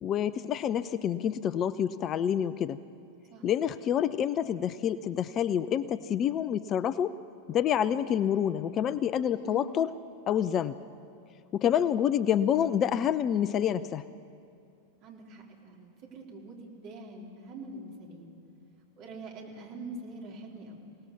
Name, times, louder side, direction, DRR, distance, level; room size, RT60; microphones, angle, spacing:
voice 1, 0.0-2.8 3.4-7.2 7.5-9.9 10.3-10.8 11.5-14.0, left 9 dB, 30° left, 17 dB, 0.5 m, -27 dB
voice 2, 9.3-9.7 15.0-18.3 19.0-20.8, right 2 dB, 40° right, -1 dB, 4.2 m, -44 dB
27.5 x 18.5 x 6.9 m, 2.5 s
figure-of-eight pair, 90°, 0 cm